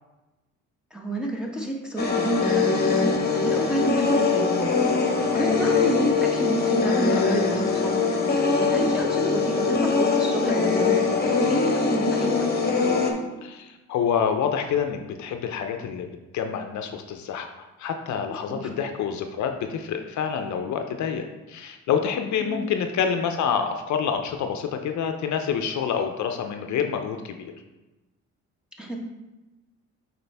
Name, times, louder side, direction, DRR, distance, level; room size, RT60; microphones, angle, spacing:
voice 1, 0.9-4.7 5.3-8.0 8.6-12.4 18.5-18.7 22.4-22.7 28.8-29.0, right 1 dB, 5° right, -1 dB, 1.3 m, -28 dB
sound 1, 2.0-13.1, left 4 dB, 30° left, 1.2 m, -23 dB
voice 2, 13.4-16.1 16.3-17.5 17.8-27.5, left 7 dB, 70° left, 6 dB, 0.6 m, -27 dB
6.7 x 4.3 x 3.4 m, 1.1 s
cardioid pair, 90°, 30 cm